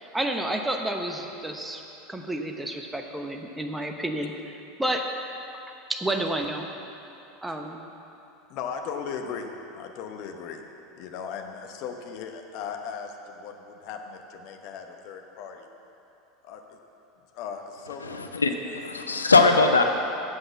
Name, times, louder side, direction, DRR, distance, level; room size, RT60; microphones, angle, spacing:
voice 1, 0.0-1.8 2.1-4.3 4.8-5.1 5.9-6.6 7.4-7.8, right 1 dB, 5° right, 3 dB, 1.0 m, -30 dB
voice 2, 8.5-10.7 10.9-15.7 16.4-16.8 17.3-18.7, left 6 dB, 50° left, 4 dB, 0.9 m, -37 dB
voice 3, 18.0-19.8, left 3 dB, 80° left, 5 dB, 0.5 m, -21 dB
8.3 x 7.7 x 7.0 m, 2.9 s
figure-of-eight pair, 80°, 0 cm